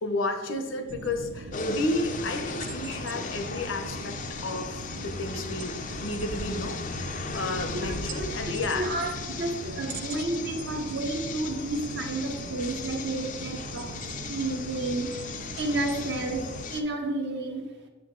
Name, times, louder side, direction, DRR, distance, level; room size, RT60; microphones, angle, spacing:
voice 1, 0.0-8.9, left 2 dB, 70° left, 7 dB, 0.8 m, -32 dB
sound 1, 0.9-16.7, right 3 dB, 90° right, 0.5 m, -41 dB
sound 2, 1.5-16.8, left 4 dB, 40° left, 0.5 m, -37 dB
voice 2, 8.7-14.0 14.3-15.1 15.6-17.7, right 2 dB, 60° right, 3 dB, 1.0 m, -31 dB
7.3 x 6.0 x 3.7 m, 1.2 s
head